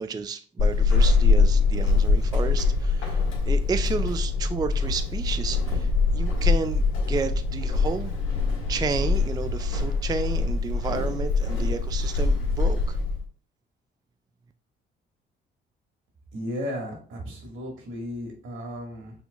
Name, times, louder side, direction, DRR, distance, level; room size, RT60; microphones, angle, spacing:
voice 1, 0.0-6.8 7.1-8.1 8.7-13.0, right 5 dB, 20° right, 10 dB, 0.3 m, -32 dB
Walk footsteps / Squeak, 0.6-13.2, left 4 dB, 90° left, 1.7 m, -23 dB
voice 2, 16.3-19.1, equal, 80° right, 0 dB, 2.0 m, -34 dB
5.9 x 3.5 x 2.4 m, 0.41 s
cardioid pair, 90°, 20 cm